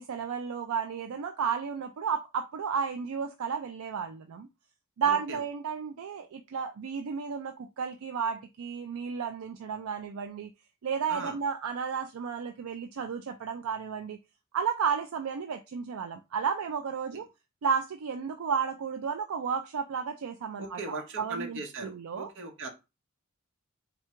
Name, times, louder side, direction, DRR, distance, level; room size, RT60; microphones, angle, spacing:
voice 1, 0.0-4.5 5.0-10.5 10.8-14.2 14.5-17.3 17.6-22.3, right 6 dB, 80° right, 0.4 m, -32 dB
voice 2, 5.0-5.4 11.1-11.4 17.1-17.2 20.6-22.7, right 3 dB, 60° right, 1.1 m, -39 dB
3.7 x 2.3 x 4.3 m
head